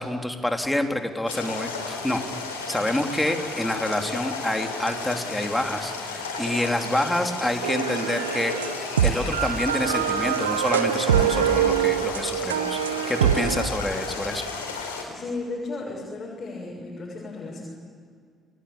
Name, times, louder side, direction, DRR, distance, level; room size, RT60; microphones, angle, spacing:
voice 1, 0.0-2.2 2.7-8.7 9.0-12.8 13.1-14.4, left 1 dB, 10° left, 4 dB, 3.3 m, -27 dB
sound 1, 1.3-15.0, left 4 dB, 80° left, 4.2 m, -33 dB
sound 2, 2.6-3.7 4.1-5.0 5.4-6.2 7.5-9.5 10.1-10.5, right 2 dB, 65° right, 6.0 m, -47 dB
sound 3, 7.6-13.7, right 9 dB, 80° right, 1.0 m, -24 dB
voice 2, 15.1-17.7, left 3 dB, 40° left, -2 dB, 7.0 m, -34 dB
30.0 x 21.0 x 8.7 m, 2.1 s
figure-of-eight pair, 45°, 0 cm